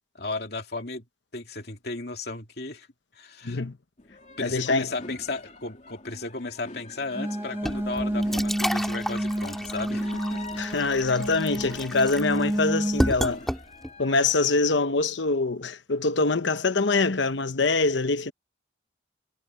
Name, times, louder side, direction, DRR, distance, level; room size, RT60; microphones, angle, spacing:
voice 1, 0.1-1.1 1.3-2.9 3.1-3.6 4.4-10.6, left 3 dB, 60° left, 2.9 m, -35 dB
voice 2, 3.4-3.8 4.4-4.9 10.6-13.4 14.0-18.3, left 3 dB, 75° left, 1.0 m, -24 dB
sound 1, 4.0-14.8, left 3 dB, 40° left, 2.8 m, -46 dB
sound 2, 7.1-13.1, right 1 dB, 15° right, 1.8 m, -30 dB
sound 3, 7.6-14.0, equal, ahead, 2.0 m, -32 dB
head